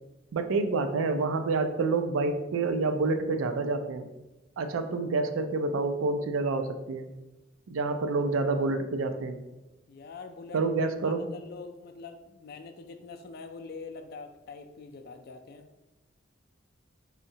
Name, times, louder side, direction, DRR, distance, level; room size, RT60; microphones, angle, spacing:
voice 1, 0.3-4.1 4.6-7.1 7.7-9.4 10.5-11.3, right 3 dB, 80° right, 8 dB, 0.4 m, -28 dB
voice 2, 9.9-10.6 11.0-15.7, left 4 dB, 50° left, 6 dB, 0.3 m, -44 dB
4.2 x 2.7 x 2.7 m, 1.0 s
head